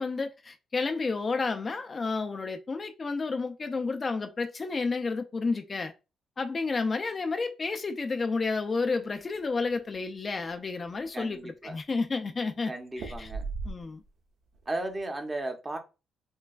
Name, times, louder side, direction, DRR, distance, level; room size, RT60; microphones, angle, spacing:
voice 1, 0.0-5.9 6.4-13.3 13.7-14.0, left 4 dB, 35° left, 0.4 m, -31 dB
sound 1, 9.1-10.0 10.4-10.5 10.8-11.5 12.9-14.2 14.5-15.0, right 4 dB, 70° right, 0.9 m, -39 dB
voice 2, 11.1-11.8 12.7-13.5 14.7-15.8, right 2 dB, 20° right, 0.8 m, -35 dB
4.5 x 2.3 x 2.4 m
cardioid pair, 90°, 0 cm